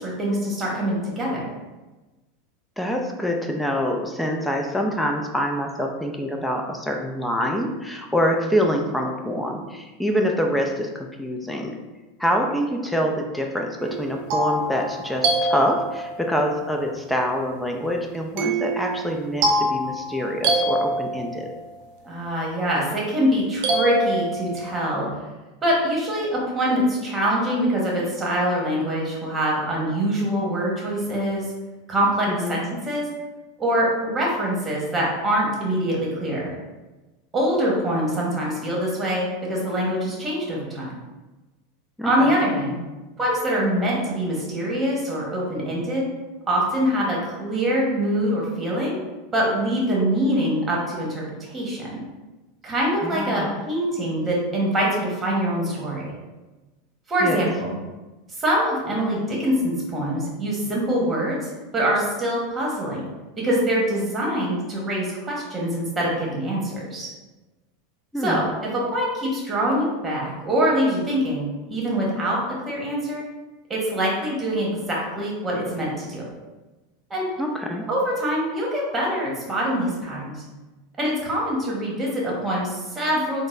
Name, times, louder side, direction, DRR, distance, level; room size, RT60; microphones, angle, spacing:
voice 1, 0.0-1.5 22.0-25.1 25.6-31.5 31.9-33.1 33.6-36.5 37.3-40.9 42.0-42.8 43.2-46.1 46.5-49.0 49.3-52.0 52.6-56.1 57.1-57.8 58.4-63.0 63.4-67.1 68.2-68.5 68.7-73.2 73.7-76.3 77.1-77.3 77.9-80.4 81.0-83.5, equal, 20° right, -3 dB, 1.1 m, -24 dB
voice 2, 2.8-11.8 12.2-21.5 32.3-32.6 42.0-42.1 53.0-53.5 57.2-57.4 68.1-68.5 77.4-77.9, equal, 5° left, 1 dB, 0.4 m, -25 dB
sound 1, 13.8-16.3 18.4-21.5 23.6-24.8, right 1 dB, 60° right, 0.6 m, -25 dB
3.9 x 2.0 x 2.5 m, 1.1 s
hypercardioid pair, 110°, 0 cm